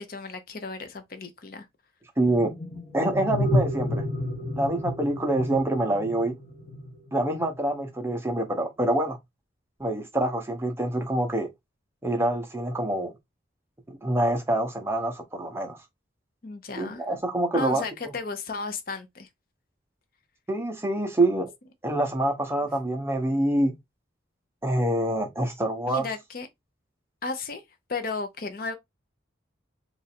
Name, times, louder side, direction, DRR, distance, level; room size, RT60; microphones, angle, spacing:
voice 1, 0.0-1.7 16.4-17.0 17.5-19.3 25.9-26.5 27.2-27.6 27.9-28.8, left 3 dB, 45° left, 0.6 m, -34 dB
voice 2, 2.2-2.5 2.9-4.0 4.5-6.3 7.1-9.2 9.8-11.5 12.0-13.1 13.9-15.8 16.8-17.8 20.5-21.5 21.8-23.8 24.6-26.1, right 1 dB, 15° right, 0.6 m, -26 dB
sound 1, 2.3-7.6, left 1 dB, 30° left, 1.0 m, -30 dB
2.9 x 2.5 x 4.2 m
head